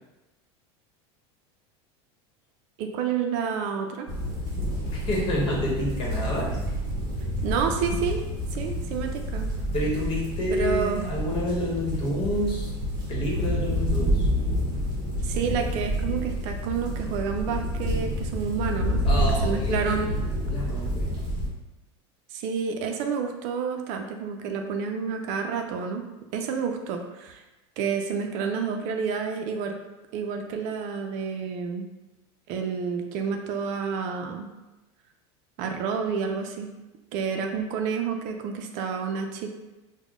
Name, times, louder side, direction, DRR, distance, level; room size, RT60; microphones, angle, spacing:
voice 1, 2.8-4.1 7.4-8.2 8.5-9.5 10.5-11.0 15.2-20.1 22.3-26.1 26.3-27.4 27.8-29.8 30.1-31.9 32.5-34.5 35.6-36.7 37.1-39.5, right 6 dB, 60° right, 4 dB, 0.5 m, -29 dB
sound 1, 4.1-21.5, equal, 25° right, 1.0 m, -28 dB
voice 2, 4.9-6.5 9.7-12.7 13.1-14.3 19.0-21.2, left 1 dB, 40° left, -3 dB, 1.1 m, -29 dB
3.6 x 2.2 x 3.6 m, 1.0 s
supercardioid pair, 125°, 15 cm